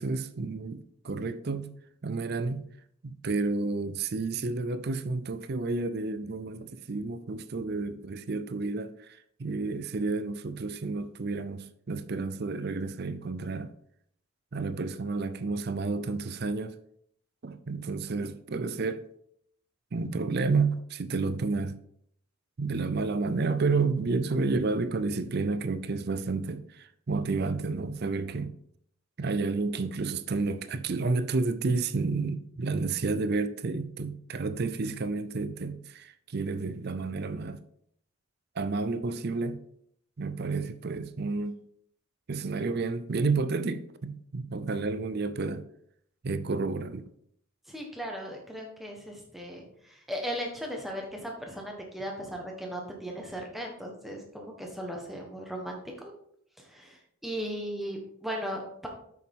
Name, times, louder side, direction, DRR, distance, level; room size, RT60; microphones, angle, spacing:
voice 1, 0.0-1.8 2.0-2.7 3.0-13.7 14.5-16.7 17.4-19.0 19.9-21.8 22.6-28.5 29.2-37.6 38.6-39.6 40.2-41.5 42.3-45.6 46.2-47.1, right 3 dB, 45° right, 0.5 m, -30 dB
voice 2, 47.7-56.1 56.6-58.9, equal, ahead, 1.3 m, -37 dB
8.4 x 6.4 x 3.6 m
head